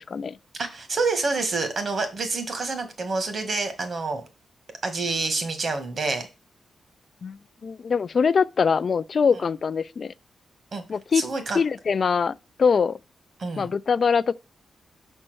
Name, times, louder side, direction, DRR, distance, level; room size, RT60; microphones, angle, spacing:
voice 1, 0.0-0.4 7.2-10.1 10.9-11.2 11.5-13.0 13.6-14.3, left 5 dB, 55° left, 0.4 m, -23 dB
voice 2, 0.5-4.2 4.8-6.3 10.7-10.8 11.1-11.6 13.4-13.7, right 3 dB, 50° right, 1.8 m, -27 dB
6.0 x 4.4 x 6.2 m
cardioid pair, 95°, 0 cm